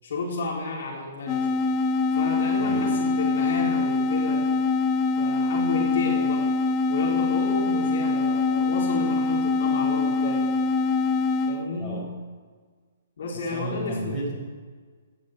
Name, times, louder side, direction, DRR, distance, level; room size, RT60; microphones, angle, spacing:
voice 1, 0.0-1.5 2.1-4.5 5.2-6.4 6.9-10.4 11.5-12.1 13.2-14.2, left 3 dB, 55° left, -3 dB, 4.3 m, -32 dB
sound 1, 1.3-11.7, left 4 dB, 25° left, 0.8 m, -24 dB
voice 2, 2.6-2.9 11.8-12.0 13.5-14.4, right 1 dB, 5° left, -6 dB, 6.5 m, -32 dB
17.5 x 12.0 x 6.7 m, 1.5 s
figure-of-eight pair, 120°, 0 cm